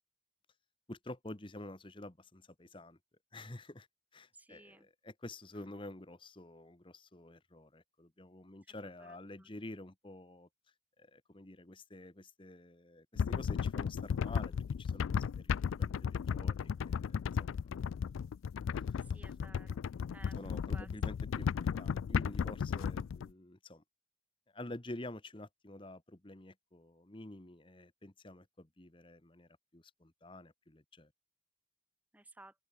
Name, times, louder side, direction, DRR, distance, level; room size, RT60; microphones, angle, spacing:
voice 1, 0.9-3.0 3.3-3.9 4.1-10.5 11.0-17.5 18.7-18.8 20.3-23.8 24.5-31.1, left 1 dB, 25° left, 1.2 m, -49 dB
voice 2, 4.3-4.9 5.5-5.6 9.0-9.6 19.0-19.8 20.1-20.4 20.7-20.9 32.1-32.5, right 1 dB, 10° right, 1.1 m, -56 dB
sound 1, 13.2-23.3, left 7 dB, 85° left, 0.3 m, -35 dB
open air
head